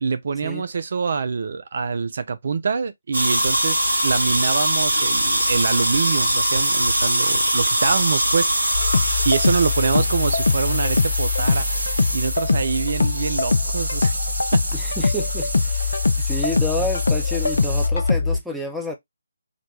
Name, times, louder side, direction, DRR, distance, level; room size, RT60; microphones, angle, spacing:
voice 1, 0.0-8.7 9.3-11.7 12.1-14.1 14.5-14.6, right 5 dB, 50° right, 0.4 m, -25 dB
sound 1, 3.1-17.9, right 1 dB, 70° right, 2.0 m, -24 dB
sound 2, 8.7-18.4, left 4 dB, 60° left, 0.5 m, -22 dB
voice 2, 14.7-18.9, left 1 dB, ahead, 0.7 m, -30 dB
4.0 x 2.2 x 3.1 m
figure-of-eight pair, 145°, 0 cm